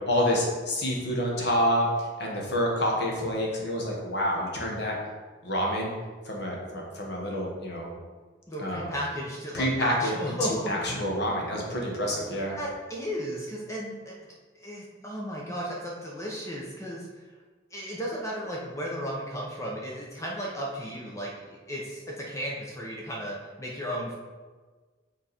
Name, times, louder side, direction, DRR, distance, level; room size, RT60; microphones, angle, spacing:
voice 1, 0.1-5.0 5.4-5.9 6.2-7.9 8.6-8.9 9.5-10.1 10.7-12.6, equal, 60° left, -2 dB, 1.4 m, -28 dB
voice 2, 8.5-10.7 12.6-14.1 14.6-17.1 17.7-24.1, equal, 15° left, -3 dB, 0.8 m, -34 dB
6.6 x 3.8 x 4.3 m, 1.4 s
head